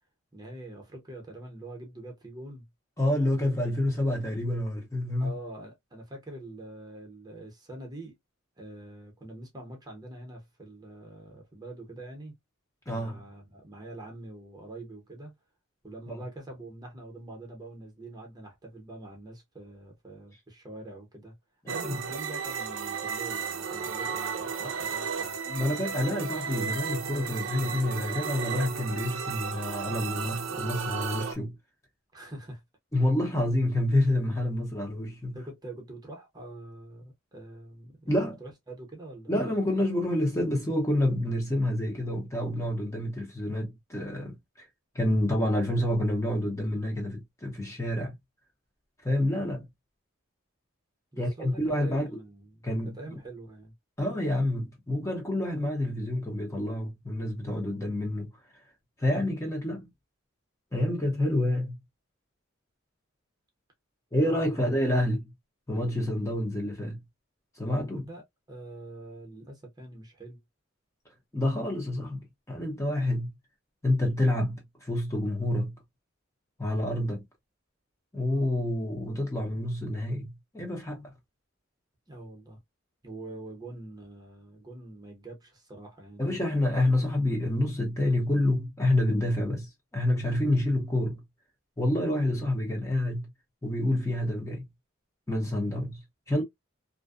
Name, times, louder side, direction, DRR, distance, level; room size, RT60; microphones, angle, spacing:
voice 1, 0.3-2.7 5.2-8.2 8.6-12.3 12.9-15.3 15.8-21.3 21.7-25.4 32.1-32.6 35.3-39.4 51.1-53.7 64.3-64.7 67.9-68.2 68.5-70.4 82.1-82.6 83.0-86.4, right 2 dB, 20° right, 0.8 m, -44 dB
voice 2, 3.0-5.3 12.9-13.2 16.1-16.2 21.6-22.0 24.6-24.7 25.5-31.5 32.9-35.4 38.1-38.4 39.3-44.6 44.9-48.1 49.0-49.6 51.2-52.1 52.6-53.2 54.0-58.3 59.0-59.9 60.7-61.8 64.1-65.3 65.7-67.0 67.6-68.1 71.3-73.3 73.8-75.7 76.6-77.2 78.1-81.1 86.2-91.2 91.8-93.3 93.6-94.6 95.3-96.0 96.3-96.4, left 1 dB, 15° left, 0.7 m, -28 dB
sound 1, 21.7-31.4, right 6 dB, 70° right, 0.5 m, -34 dB
2.5 x 2.2 x 2.3 m
head